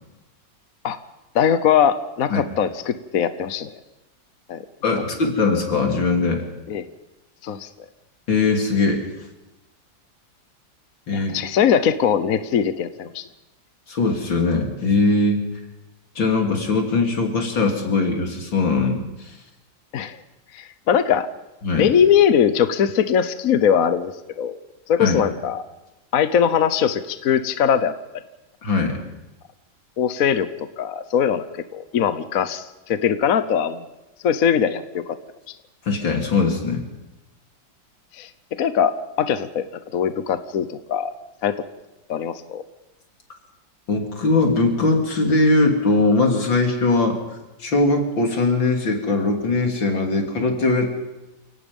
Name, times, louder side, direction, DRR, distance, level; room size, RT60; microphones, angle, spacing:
voice 1, 1.3-3.7 4.5-4.6 6.7-6.9 7.4-7.7 11.1-13.2 19.9-20.2 20.5-21.3 21.8-24.6 24.9-25.6 26.1-27.9 30.0-33.9 34.2-35.2 38.1-38.3 38.6-39.6 39.9-41.1 41.4-41.5 42.1-42.6, left 8 dB, 55° left, 11 dB, 1.2 m, -21 dB
voice 2, 4.8-6.4 8.3-9.0 11.1-11.4 13.9-15.4 16.2-19.1 21.6-21.9 25.0-25.2 28.6-29.0 35.9-36.8 43.9-47.2 47.6-50.9, left 3 dB, 75° left, 2 dB, 3.8 m, -20 dB
29.5 x 18.0 x 5.4 m, 1.0 s
omnidirectional pair, 2.1 m